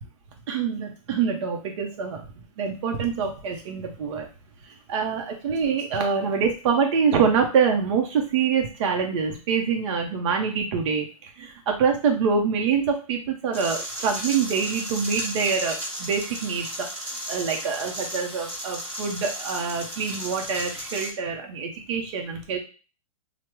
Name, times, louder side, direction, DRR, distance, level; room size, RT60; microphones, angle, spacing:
voice 1, 0.5-2.2 2.6-4.3 4.9-16.9 17.3-22.6, right 6 dB, 50° right, 2 dB, 0.6 m, -25 dB
sound 1, 13.5-21.1, equal, 10° right, 1.2 m, -34 dB
3.3 x 2.0 x 2.9 m, 0.34 s
hypercardioid pair, 135°, 19 cm